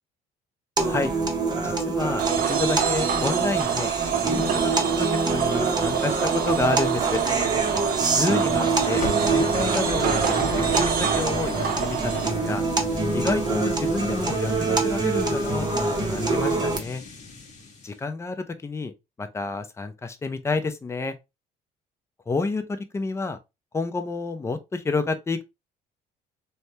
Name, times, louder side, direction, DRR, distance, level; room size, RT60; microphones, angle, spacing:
sound 1, 0.8-16.8, right 3 dB, 25° right, 0.8 m, -26 dB
voice 1, 1.6-7.2 8.1-9.0 9.3-12.6 13.1-17.0 17.8-18.9 19.2-21.2 22.3-23.4 23.7-25.4, left 3 dB, 15° left, 0.4 m, -29 dB
sound 2, 2.2-12.3, right 8 dB, 55° right, 0.6 m, -26 dB
sound 3, 8.8-17.9, left 4 dB, 45° left, 1.0 m, -36 dB
3.2 x 2.1 x 2.7 m
cardioid pair, 110°, 17 cm